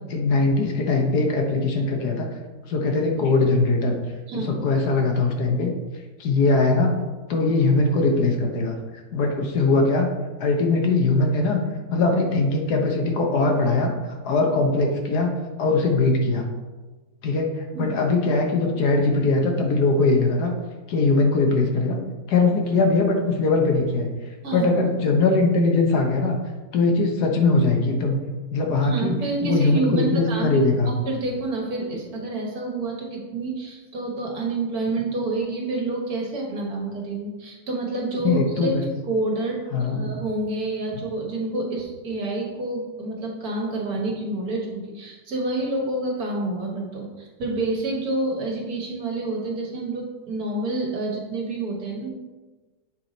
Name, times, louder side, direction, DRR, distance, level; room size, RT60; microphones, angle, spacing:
voice 1, 0.1-2.3 2.7-3.9 4.3-5.7 6.2-6.9 7.3-8.8 9.1-10.1 10.4-11.6 11.9-13.9 14.2-16.4 17.2-20.5 20.9-22.0 22.3-24.1 24.5-26.4 26.7-28.2 28.5-29.1 29.4-30.9 38.2-38.9 39.7-40.0, left 3 dB, 65° left, 2 dB, 1.4 m, -21 dB
voice 2, 4.3-4.6 17.7-17.9 24.4-24.7 25.0-25.2 28.8-30.6 30.9-38.7 39.1-52.1, right 2 dB, 60° right, -1 dB, 1.7 m, -28 dB
7.2 x 4.7 x 3.9 m, 1.2 s
omnidirectional pair, 1.9 m